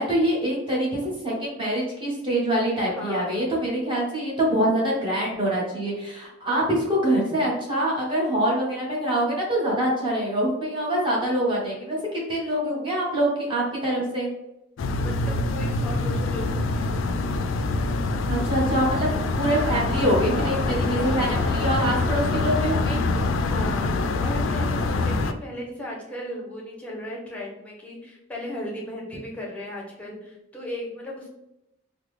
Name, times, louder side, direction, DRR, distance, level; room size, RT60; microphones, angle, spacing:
voice 1, 0.0-14.3 18.3-19.1 19.4-23.0, right 1 dB, 25° right, -5 dB, 1.0 m, -25 dB
voice 2, 2.9-3.5 6.2-6.3 15.0-16.9 20.3-20.6 23.5-23.9 24.2-31.3, left 1 dB, 5° left, -3 dB, 0.7 m, -36 dB
sound 1, 14.8-25.3, left 3 dB, 80° left, 0.3 m, -25 dB
sound 2, 18.9-23.9, right 1 dB, 70° right, 0.9 m, -38 dB
3.6 x 2.0 x 3.2 m, 0.88 s
head